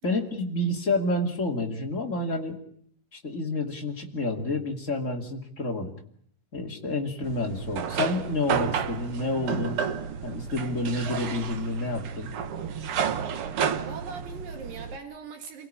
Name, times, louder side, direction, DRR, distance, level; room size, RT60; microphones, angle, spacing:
voice 1, 0.0-2.6 3.1-5.9 6.5-9.8 10.2-12.3, left 2 dB, 25° left, 1 dB, 2.6 m, -29 dB
sound 1, 7.2-15.0, right 7 dB, 60° right, 1.6 m, -31 dB
voice 2, 13.8-15.7, right 5 dB, 80° right, 5 dB, 4.2 m, -41 dB
28.5 x 17.0 x 8.9 m, 0.65 s
omnidirectional pair, 3.9 m